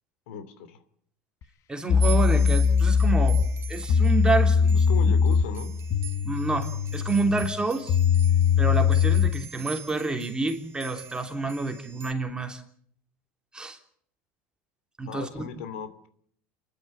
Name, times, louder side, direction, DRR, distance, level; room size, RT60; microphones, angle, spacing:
voice 1, 0.3-0.8 4.7-5.7 15.1-16.1, left 7 dB, 80° left, 11 dB, 2.7 m, -37 dB
sound 1, 1.4-1.5 1.9-9.4, left 6 dB, 50° left, 1.4 m, -22 dB
voice 2, 1.7-3.4 3.7-4.9 6.2-8.0 8.6-12.6 13.5-13.8 15.0-15.5, right 3 dB, 10° right, 4 dB, 3.1 m, -28 dB
sound 2, 2.0-12.1, right 10 dB, 40° right, 3.7 m, -43 dB
28.0 x 12.0 x 8.9 m, 0.65 s
supercardioid pair, 100°, 7 cm